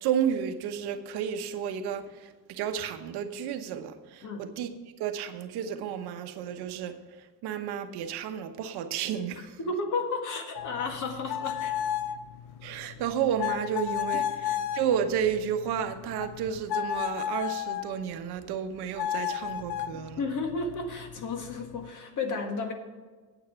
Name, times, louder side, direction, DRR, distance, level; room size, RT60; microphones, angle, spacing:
voice 1, 0.0-2.1 2.5-4.7 5.0-7.0 7.4-9.6 12.6-20.2, right 8 dB, 90° right, 8 dB, 1.1 m, -31 dB
voice 2, 9.6-11.9 14.1-14.2 19.9-22.7, left 3 dB, 50° left, 4 dB, 1.8 m, -33 dB
Homemade paper whistle, 10.6-17.9 19.0-21.9, left 10 dB, 85° left, 0.7 m, -34 dB
9.1 x 8.6 x 5.7 m, 1.3 s
cardioid pair, 155°, 38 cm